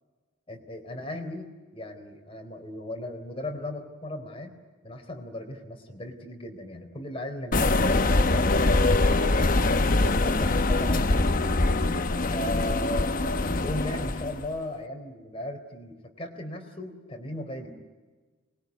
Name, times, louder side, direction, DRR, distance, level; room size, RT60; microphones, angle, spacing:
voice 1, 0.5-4.6 4.8-9.6 10.1-11.6 12.3-17.8, left 1 dB, 30° left, 3 dB, 3.9 m, -37 dB
sound 1, 7.5-14.5, left 2 dB, 45° left, 0.9 m, -23 dB
24.5 x 21.5 x 9.5 m, 1.3 s
head